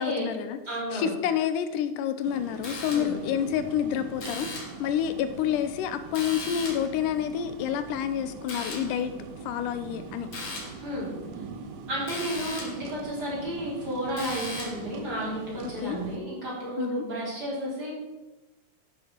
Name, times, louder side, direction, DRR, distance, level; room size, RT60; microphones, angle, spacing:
voice 1, 0.0-0.6 0.9-9.1 9.5-10.3 15.8-16.0 16.8-17.0, left 9 dB, 85° left, 11 dB, 2.2 m, -28 dB
voice 2, 0.7-1.1 2.9-3.1 10.8-11.1 11.9-17.9, right 1 dB, 30° right, -7 dB, 4.4 m, -32 dB
sound 1, 2.2-16.2, right 5 dB, 80° right, 2.7 m, -42 dB
sound 2, 2.6-3.3 4.2-4.9 6.1-7.0 8.5-9.0 10.3-10.8 12.1-12.9 14.2-14.9, left 3 dB, 45° left, 2.1 m, -38 dB
10.5 x 6.7 x 6.0 m, 1.1 s
omnidirectional pair, 3.7 m